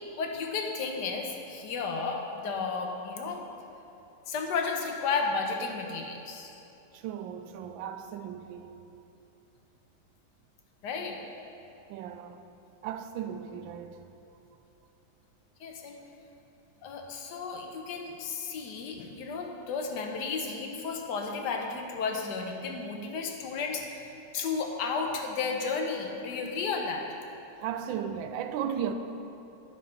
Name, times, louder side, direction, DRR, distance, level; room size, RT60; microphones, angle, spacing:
voice 1, 0.2-3.4 4.3-6.5 10.8-11.2 15.6-16.0 16.8-24.1 24.3-27.1, left 4 dB, 70° left, 2 dB, 1.4 m, -33 dB
voice 2, 6.9-8.8 11.9-12.4 12.8-14.0 27.6-28.9, right 8 dB, 85° right, 8 dB, 1.3 m, -36 dB
9.8 x 5.4 x 5.5 m, 2.9 s
omnidirectional pair, 2.0 m